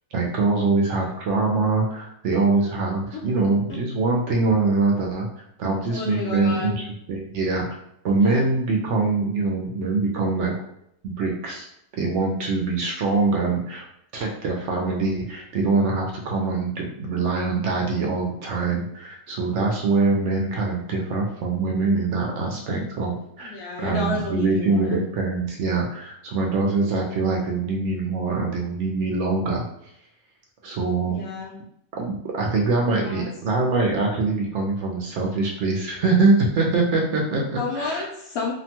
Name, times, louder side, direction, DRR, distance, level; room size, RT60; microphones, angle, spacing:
voice 1, 0.1-5.3 5.6-7.6 8.0-10.5 11.0-11.7 12.0-13.8 14.1-29.9 30.6-31.2 32.0-38.0, right 3 dB, 65° right, 0 dB, 0.7 m, -23 dB
voice 2, 5.9-6.8 8.2-8.5 23.4-25.0 31.1-31.5 33.0-33.2 37.6-38.5, left 3 dB, 75° left, -3 dB, 1.1 m, -31 dB
2.8 x 2.2 x 2.8 m, 0.75 s
omnidirectional pair, 1.6 m